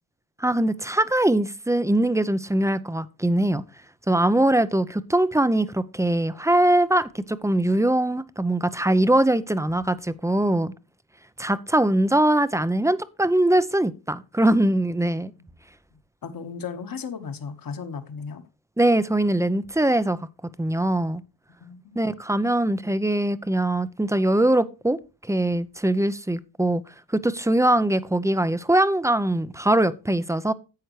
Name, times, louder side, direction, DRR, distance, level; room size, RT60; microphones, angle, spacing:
voice 1, 0.4-3.6 4.1-10.7 11.4-15.3 18.8-20.2 20.6-21.2 22.0-26.8 27.1-30.5, right 1 dB, 5° right, 0.5 m, -22 dB
voice 2, 15.9-18.4 21.6-22.0, left 6 dB, 50° left, 1.3 m, -36 dB
10.5 x 7.8 x 3.1 m
cardioid pair, 90°, 45 cm